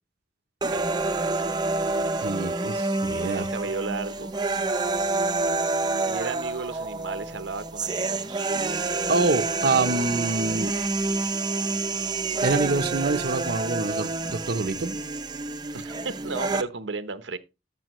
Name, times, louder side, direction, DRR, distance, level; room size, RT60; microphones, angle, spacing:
sound 1, 0.6-16.6, right 3 dB, 25° right, 0.7 m, -28 dB
voice 1, 0.7-1.4 3.1-4.3 6.0-8.5 15.7-17.4, right 4 dB, 85° right, 0.9 m, -34 dB
voice 2, 2.2-3.5 9.1-10.7 12.4-15.0, right 3 dB, 60° right, 0.7 m, -26 dB
14.0 x 5.6 x 3.0 m
head